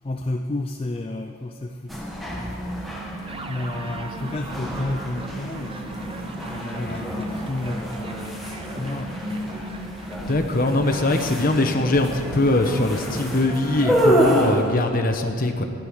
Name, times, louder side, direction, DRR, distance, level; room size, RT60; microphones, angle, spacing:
voice 1, 0.0-2.1 2.6-2.8 3.5-5.9 6.5-9.2, left 2 dB, 25° left, 5 dB, 0.4 m, -31 dB
sound 1, 1.9-14.6, equal, ahead, 1.4 m, -28 dB
sound 2, 2.7-12.7, right 12 dB, 75° right, 0.6 m, -43 dB
sound 3, 3.3-15.0, right 3 dB, 25° right, 0.7 m, -42 dB
voice 2, 10.3-15.6, left 2 dB, 45° left, 5 dB, 1.0 m, -22 dB
13.0 x 10.5 x 6.5 m, 2.3 s
head